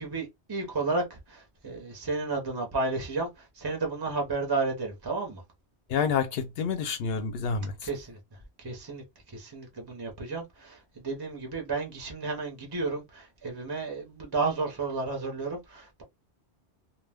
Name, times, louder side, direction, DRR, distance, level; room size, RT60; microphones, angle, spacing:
voice 1, 0.0-5.4 7.8-8.2 8.6-9.0 9.3-16.0, right 3 dB, 30° right, 0.5 m, -32 dB
voice 2, 5.9-7.9, left 6 dB, 65° left, 0.7 m, -28 dB
2.3 x 2.0 x 3.3 m
omnidirectional pair, 1.2 m